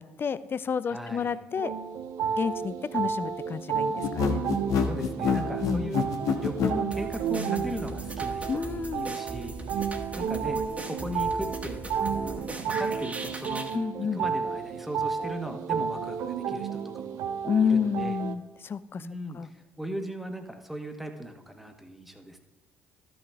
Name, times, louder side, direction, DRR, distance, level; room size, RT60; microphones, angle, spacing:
voice 1, 0.0-1.7 2.4-4.4 5.6-5.9 8.5-9.2 13.7-14.2 17.4-19.1 19.3-19.5, left 6 dB, 35° left, 15 dB, 0.4 m, -30 dB
voice 2, 0.9-1.3 4.7-6.0 6.4-10.6 10.8-11.8 12.6-13.7 14.1-17.2 17.6-18.2 19.0-22.4, equal, 5° right, 5 dB, 1.3 m, -38 dB
sound 1, 1.6-18.3, right 7 dB, 70° right, 0.7 m, -32 dB
sound 2, 4.0-6.8, left 7 dB, 65° left, 1.2 m, -26 dB
sound 3, 6.9-13.8, right 2 dB, 20° right, 1.4 m, -39 dB
13.0 x 6.1 x 3.5 m, 1.0 s
hypercardioid pair, 60°, 6 cm